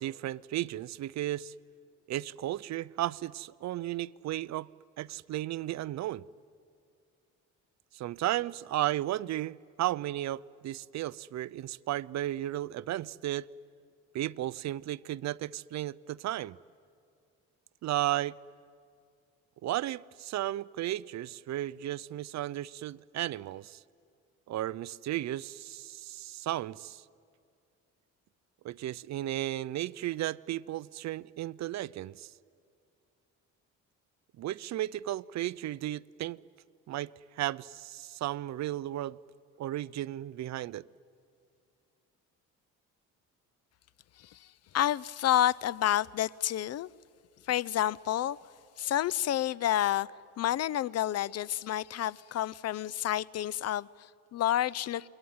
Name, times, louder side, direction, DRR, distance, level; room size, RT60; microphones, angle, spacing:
voice 1, 0.0-1.5 2.1-4.7 5.0-6.2 7.9-13.5 14.1-16.6 17.8-18.3 19.6-23.8 24.5-27.0 28.6-32.3 34.4-36.4 36.9-39.2 39.6-40.8, right 14 dB, 60° right, 0.6 m, -34 dB
voice 2, 44.2-44.5 44.7-46.9 47.5-48.4 48.8-50.1 50.4-55.1, left 12 dB, 50° left, 0.6 m, -29 dB
28.0 x 22.0 x 9.5 m
cardioid pair, 100°, 32 cm